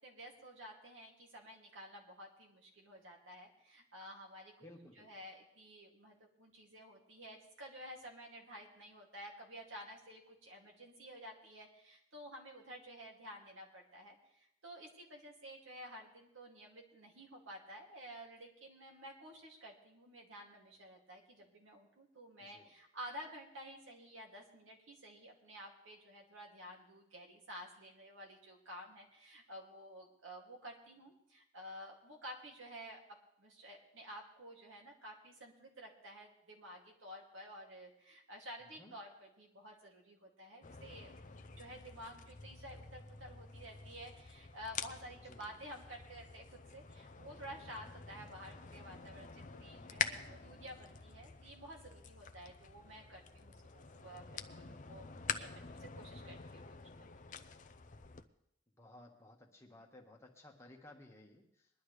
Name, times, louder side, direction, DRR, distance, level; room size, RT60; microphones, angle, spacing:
voice 1, 0.0-4.5 4.9-56.8 57.1-57.2, equal, 75° right, 0 dB, 2.6 m, -52 dB
voice 2, 4.6-5.1 22.4-22.7 38.8-38.9 45.3-45.6 58.8-61.7, left 1 dB, 15° left, 0 dB, 1.6 m, -57 dB
sound 1, 40.6-58.2, left 6 dB, 40° left, 0.6 m, -47 dB
21.0 x 11.5 x 3.3 m, 0.76 s
head